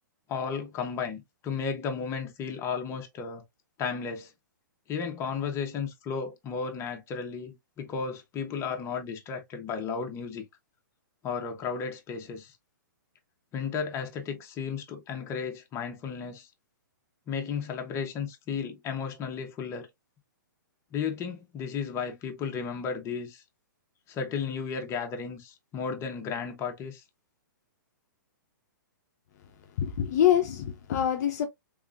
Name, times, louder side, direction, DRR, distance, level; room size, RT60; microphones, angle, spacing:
voice 1, 0.3-3.4 3.8-4.3 4.9-10.4 11.2-12.5 13.5-16.5 17.3-19.9 20.9-23.4 24.1-27.0, left 6 dB, 25° left, 1.0 m, -34 dB
voice 2, 29.8-31.5, left 10 dB, 55° left, 0.7 m, -25 dB
3.5 x 3.2 x 2.4 m
hypercardioid pair, 130°, 11 cm